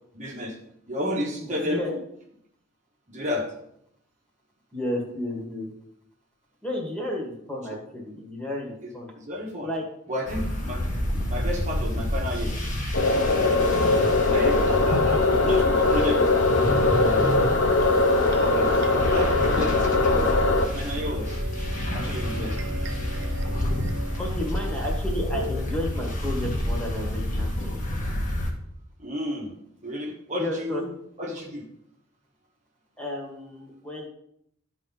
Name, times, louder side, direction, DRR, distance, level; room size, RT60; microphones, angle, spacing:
voice 1, 0.1-0.5 0.9-1.8 3.1-3.5 9.3-9.7 10.1-10.8 11.3-12.6 14.3-16.2 16.8-17.6 18.4-18.7 19.0-20.3 20.7-21.4 21.9-22.6 29.0-29.5 29.8-30.9 31.2-31.7, left 1 dB, 35° right, -2 dB, 1.4 m, -31 dB
voice 2, 1.4-2.0 4.7-5.7 6.6-9.1 9.6-9.9 24.2-27.8 30.3-30.8 33.0-34.1, left 1 dB, 5° left, -2 dB, 1.8 m, -32 dB
sound 1, 10.3-28.5, left 1 dB, 40° left, 1.7 m, -29 dB
sound 2, 12.9-20.7, left 3 dB, 65° left, 0.9 m, -21 dB
sound 3, 14.6-24.9, right 1 dB, 60° right, 0.9 m, -39 dB
12.5 x 4.6 x 4.0 m, 0.73 s
head